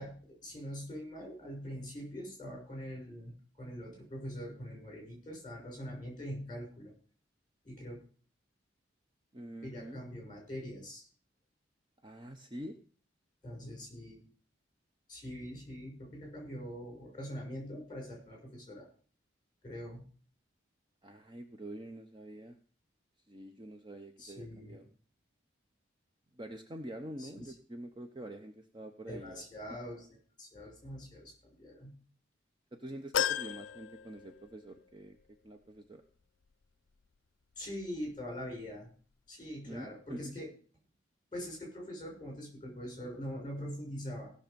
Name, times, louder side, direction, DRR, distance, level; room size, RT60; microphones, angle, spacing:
voice 1, 0.0-6.9 7.6-8.0 9.6-11.1 13.4-14.2 15.1-18.9 19.6-20.0 24.2-24.8 27.2-27.5 29.1-30.1 30.4-32.0 37.6-38.9 39.3-40.5 41.3-44.3, equal, 25° left, -1 dB, 6.2 m, -43 dB
voice 2, 9.3-10.0 12.0-12.8 21.0-22.6 23.3-24.9 26.4-29.4 32.7-35.2 35.4-36.0 39.7-40.4, right 1 dB, 25° right, 5 dB, 0.8 m, -46 dB
sound 1, 33.1-34.8 35.2-35.3 36.5-36.6, left 9 dB, 85° left, 0.4 m, -35 dB
16.5 x 6.6 x 5.2 m, 0.43 s
head